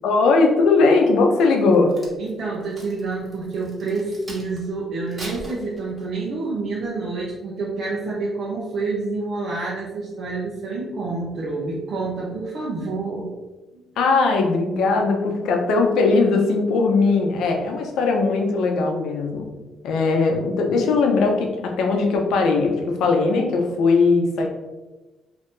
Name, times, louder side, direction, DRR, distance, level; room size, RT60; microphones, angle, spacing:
voice 1, 0.0-1.9 14.0-19.5 19.8-24.5, left 3 dB, 85° left, 2 dB, 0.6 m, -19 dB
Crack, 1.6-4.7 5.1-6.3 6.8-7.0, right 1 dB, 30° right, 1.2 m, -41 dB
voice 2, 2.2-13.3 13.7-13.8, right 3 dB, 75° right, -5 dB, 0.7 m, -28 dB
2.7 x 2.6 x 3.6 m, 1.1 s
cardioid pair, 90°, 0 cm